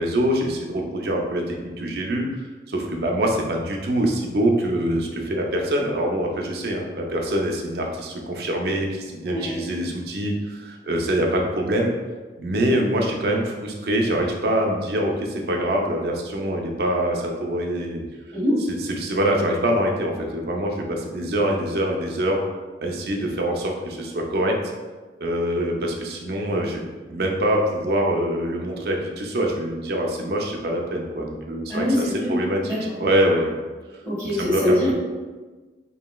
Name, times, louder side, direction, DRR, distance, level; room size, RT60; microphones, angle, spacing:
voice 1, 0.0-2.3 2.7-11.9 12.4-18.0 18.7-22.4 22.8-24.6 25.2-33.5 34.3-34.9, right 1 dB, 60° right, 0 dB, 0.4 m, -24 dB
voice 2, 31.7-32.3 32.6-32.8 34.0-34.9, equal, 10° left, -11 dB, 1.5 m, -23 dB
3.0 x 2.6 x 2.2 m, 1.3 s
head